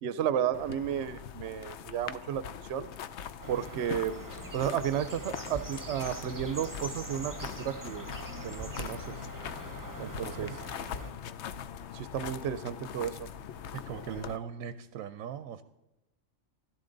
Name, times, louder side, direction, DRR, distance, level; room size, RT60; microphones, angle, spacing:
voice 1, 0.0-2.9 3.5-4.1 4.5-8.1 8.4-9.1 10.0-10.5 11.9-13.3, right 9 dB, 65° right, 14 dB, 0.8 m, -33 dB
sound 1, 0.5-14.4, left 8 dB, 60° left, 0.9 m, -42 dB
sound 2, 3.4-11.1, right 2 dB, 15° right, 0.9 m, -44 dB
voice 2, 10.2-10.8 13.7-15.6, right 8 dB, 90° right, 11 dB, 1.1 m, -40 dB
16.5 x 13.0 x 3.9 m, 0.98 s
omnidirectional pair, 1.4 m